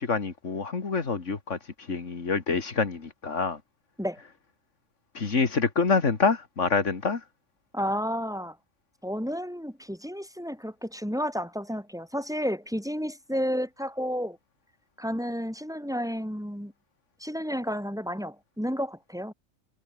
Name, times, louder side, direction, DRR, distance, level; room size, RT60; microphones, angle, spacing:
voice 1, 0.0-3.6 5.1-7.2, left 4 dB, 65° left, 2.6 m, -26 dB
voice 2, 7.7-8.6 9.0-14.4 15.0-16.7 17.2-19.3, equal, ahead, 6.3 m, -31 dB
omnidirectional pair, 1.3 m